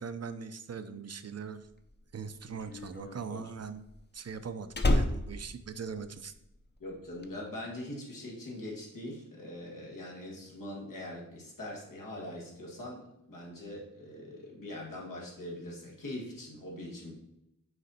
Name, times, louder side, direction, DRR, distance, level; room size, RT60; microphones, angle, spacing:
voice 1, 0.0-1.7 2.1-3.9 4.1-6.3, right 6 dB, 50° right, 11 dB, 0.5 m, -41 dB
Slam, 1.8-6.6 6.8-7.3, left 1 dB, 35° left, 0.7 m, -31 dB
voice 2, 6.8-17.1, left 1 dB, 85° left, -3 dB, 2.0 m, -42 dB
6.6 x 4.3 x 4.2 m, 0.84 s
wide cardioid pair, 70°, 32 cm